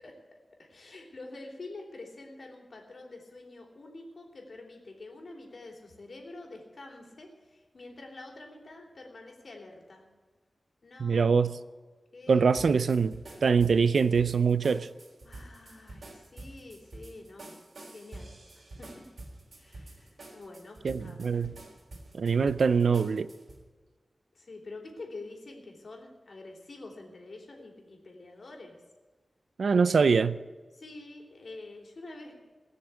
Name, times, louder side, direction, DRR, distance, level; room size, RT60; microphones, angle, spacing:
voice 1, 0.0-10.0 10.8-11.5 12.1-12.6 15.2-17.6 17.9-18.3 18.8-19.0 19.6-21.5 24.3-28.8 29.9-30.3 30.7-32.3, left 2 dB, 60° left, 3.2 m, -47 dB
voice 2, 11.0-11.6 12.3-13.2 13.4-14.9 20.8-21.5 22.1-23.3 29.6-30.4, right 5 dB, 90° right, 0.5 m, -24 dB
sound 1, 12.6-23.6, right 2 dB, 65° right, 3.4 m, -48 dB
19.5 x 6.6 x 8.2 m
wide cardioid pair, 105°, 0 cm